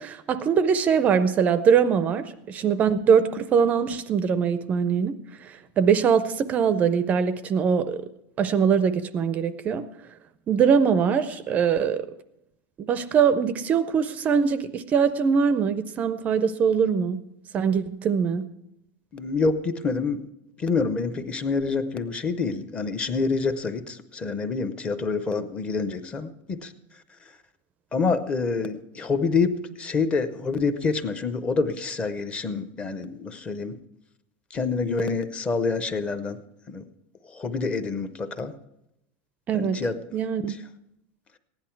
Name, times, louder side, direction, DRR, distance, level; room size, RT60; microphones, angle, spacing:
voice 1, 0.0-8.0 8.4-9.9 10.5-12.1 12.8-17.2 17.5-18.5 39.5-39.8 40.1-40.6, right 6 dB, 20° right, 13 dB, 0.4 m, -22 dB
voice 2, 19.1-20.3 20.6-26.7 27.9-33.8 34.5-36.4 36.7-36.9 37.2-38.5 39.5-39.9, left 4 dB, 15° left, 11 dB, 0.6 m, -27 dB
15.5 x 10.5 x 4.5 m, 0.84 s
supercardioid pair, 175°, 7 cm